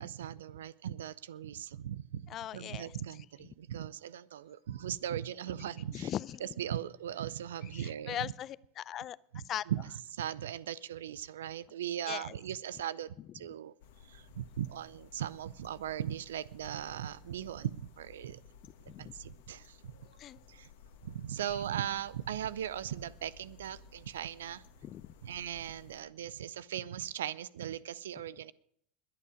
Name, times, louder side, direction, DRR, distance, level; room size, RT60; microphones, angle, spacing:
voice 1, 0.0-6.1 6.4-8.3 9.3-13.7 14.1-18.4 19.0-19.9 20.5-20.7 21.0-24.6 25.2-28.5, right 10 dB, 80° right, 20 dB, 0.5 m, -39 dB
voice 2, 2.3-2.9 5.9-6.5 7.7-9.2 9.5-9.6 12.1-12.3 18.9-19.1 20.2-20.4 24.8-25.0, left 11 dB, 45° left, 21 dB, 0.5 m, -39 dB
sound 1, 13.8-26.0, left 5 dB, 75° left, 1.5 m, -57 dB
21.5 x 8.7 x 5.0 m, 0.69 s
hypercardioid pair, 85°, 0 cm